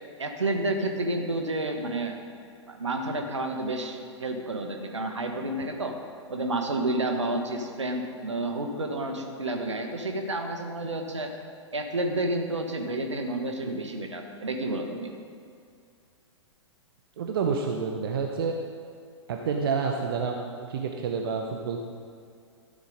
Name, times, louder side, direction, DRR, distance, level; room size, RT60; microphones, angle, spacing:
voice 1, 0.2-2.2 2.7-6.0 6.3-11.3 11.7-15.1, right 2 dB, 70° right, 4 dB, 1.5 m, -30 dB
voice 2, 17.2-18.6 19.3-21.8, right 5 dB, 50° right, 3 dB, 0.9 m, -29 dB
13.0 x 8.1 x 5.1 m, 2.3 s
figure-of-eight pair, 110°, 16 cm